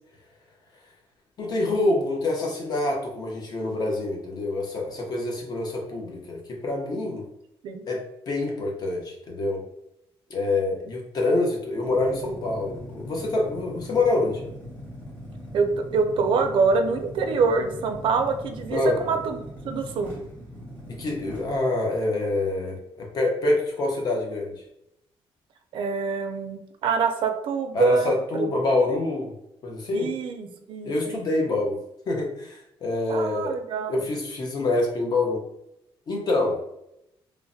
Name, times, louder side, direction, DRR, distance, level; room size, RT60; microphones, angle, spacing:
voice 1, 1.4-7.2 7.9-9.6 10.3-14.5 18.7-19.0 21.0-24.5 27.7-29.3 29.6-30.1 30.8-31.8 32.1-33.6 33.9-35.4 36.1-36.6, left 2 dB, 40° left, 0 dB, 0.7 m, -26 dB
sound 1, 11.8-21.6, equal, 20° left, 1.2 m, -40 dB
voice 2, 15.5-19.4 19.6-20.1 25.7-28.5 29.9-31.3 33.1-34.1, right 4 dB, 55° right, 6 dB, 0.4 m, -25 dB
3.1 x 2.0 x 2.6 m, 0.81 s
cardioid pair, 160°, 10 cm